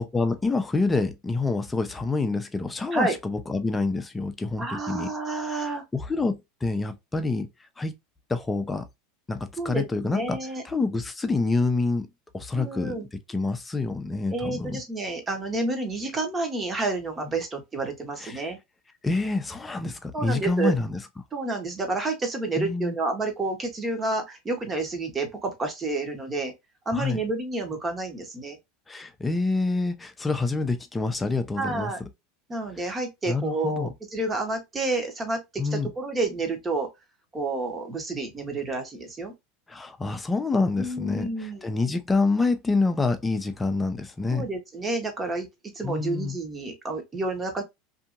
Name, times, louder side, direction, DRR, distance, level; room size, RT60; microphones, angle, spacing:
voice 1, 0.1-5.1 5.6-7.5 7.8-7.9 8.3-8.8 9.3-10.4 10.6-12.1 12.3-12.9 13.3-14.8 18.2-18.5 19.0-21.0 22.6-23.0 26.9-27.2 28.9-31.9 33.3-33.9 35.6-35.9 39.7-41.3 41.6-44.5 45.8-46.4, left 3 dB, 15° left, 0.6 m, -27 dB
voice 2, 4.6-5.8 9.6-10.6 12.5-13.1 14.3-18.6 20.1-20.7 21.3-26.5 26.9-28.6 31.6-32.0 32.5-35.4 35.7-36.9 37.3-39.3 40.8-41.6 44.3-45.5 45.7-47.6, right 2 dB, 25° right, 1.1 m, -29 dB
2.7 x 2.6 x 2.5 m
hypercardioid pair, 95°, 0 cm